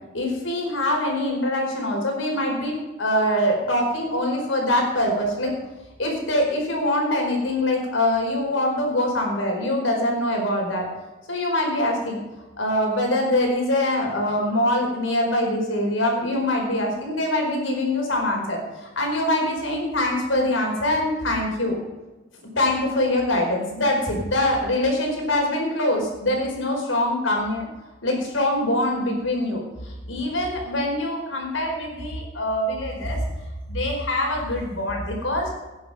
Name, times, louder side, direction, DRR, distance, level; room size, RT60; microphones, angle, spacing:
voice 1, 0.1-5.5 6.0-10.9 11.3-12.2 12.6-21.8 22.6-27.6 28.0-33.2 33.7-35.5, left 1 dB, 85° left, 1 dB, 4.9 m, -24 dB
16.5 x 10.5 x 5.1 m, 1.1 s
head